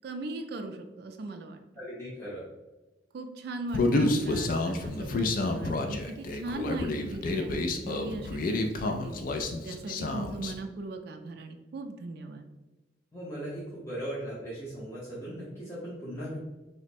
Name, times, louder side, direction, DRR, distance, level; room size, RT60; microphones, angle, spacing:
voice 1, 0.0-1.6 3.1-12.5, right 2 dB, 60° right, 5 dB, 0.3 m, -39 dB
voice 2, 1.8-2.4 13.1-16.4, right 1 dB, 15° left, -9 dB, 0.7 m, -38 dB
Human voice, 3.7-10.5, left 2 dB, 50° left, 0.3 m, -29 dB
3.1 x 2.1 x 4.2 m, 1.1 s
head